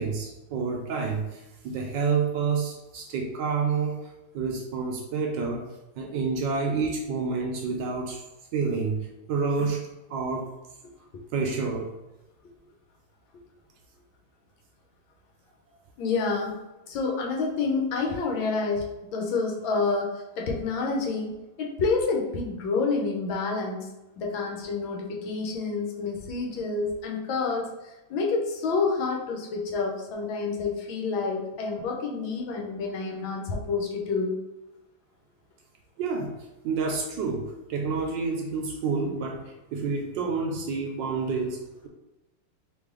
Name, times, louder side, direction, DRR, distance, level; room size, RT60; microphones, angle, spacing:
voice 1, 0.0-5.7 6.0-8.2 8.5-9.0 9.3-9.8 10.1-10.5 11.3-11.9 36.0-36.3 36.6-41.9, right 4 dB, 70° right, 1 dB, 1.2 m, -29 dB
voice 2, 16.0-16.6 16.9-23.9 24.2-34.4, left 4 dB, 75° left, 0 dB, 1.5 m, -28 dB
4.1 x 3.2 x 3.6 m, 0.99 s
omnidirectional pair, 2.3 m